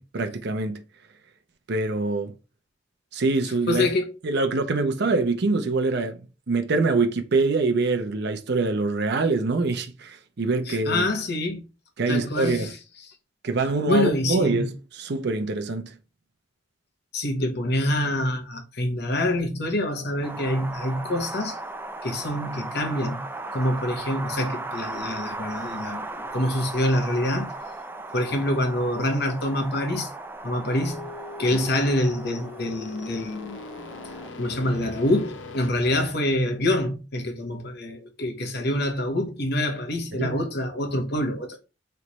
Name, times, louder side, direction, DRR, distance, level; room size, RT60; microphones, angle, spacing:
voice 1, 0.1-0.8 1.7-2.3 3.1-3.9 4.2-11.0 12.0-12.7 13.4-15.9 31.5-31.6 40.2-40.4, right 3 dB, 60° right, 0.6 m, -24 dB
voice 2, 3.7-4.1 10.7-11.7 12.1-12.7 13.9-14.7 17.1-21.6 22.0-23.2 23.5-27.5 28.1-30.1 30.4-31.1 31.4-33.6 34.4-41.6, left 1 dB, 60° left, 1.0 m, -26 dB
Wind, 20.2-34.3, right 2 dB, 10° right, 0.3 m, -37 dB
sound 1, 30.7-35.7, left 3 dB, 75° left, 0.7 m, -40 dB
3.3 x 3.0 x 4.0 m
head